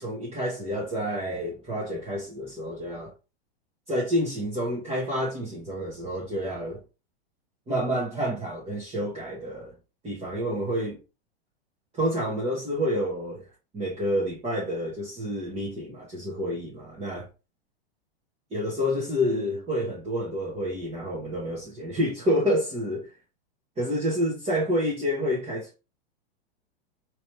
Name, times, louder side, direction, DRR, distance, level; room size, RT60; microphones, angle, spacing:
voice 1, 0.0-3.1 3.9-6.8 7.7-9.7 10.0-11.0 12.0-13.4 13.7-17.3 18.5-23.1 23.8-25.7, equal, 20° right, 1.3 m, -28 dB
4.0 x 3.1 x 3.3 m
hypercardioid pair, 140°, 31 cm